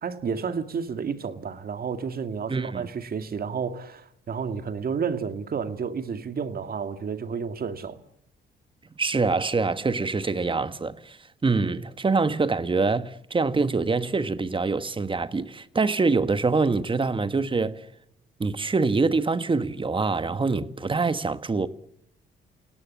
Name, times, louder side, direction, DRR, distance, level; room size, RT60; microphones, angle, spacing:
voice 1, 0.0-8.0, right 6 dB, 50° right, 2.1 m, -31 dB
voice 2, 2.5-2.9 9.0-17.8 18.4-21.7, right 4 dB, 25° right, 1.5 m, -25 dB
29.5 x 17.5 x 8.3 m
cardioid pair, 90°, 20 cm